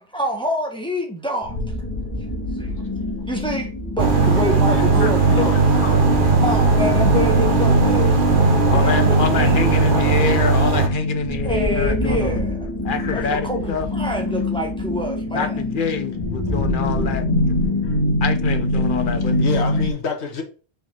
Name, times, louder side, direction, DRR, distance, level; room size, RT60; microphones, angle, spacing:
voice 1, 0.1-1.5 2.6-3.7 3.9-5.5 6.4-8.2 8.7-10.0 11.4-12.7 13.1-15.6, equal, 5° left, 1.4 m, -27 dB
sound 1, 1.4-19.9, left 1 dB, 25° left, 2.0 m, -24 dB
sound 2, 4.0-10.9, right 4 dB, 50° right, 1.1 m, -17 dB
voice 2, 4.7-6.2 12.9-13.3 16.5-16.9 17.8-18.0 19.4-20.4, left 5 dB, 75° left, 1.5 m, -31 dB
voice 3, 8.7-12.4 12.8-13.9 15.3-17.7 18.2-19.6, left 5 dB, 50° left, 1.0 m, -26 dB
5.3 x 4.7 x 3.9 m
omnidirectional pair, 1.1 m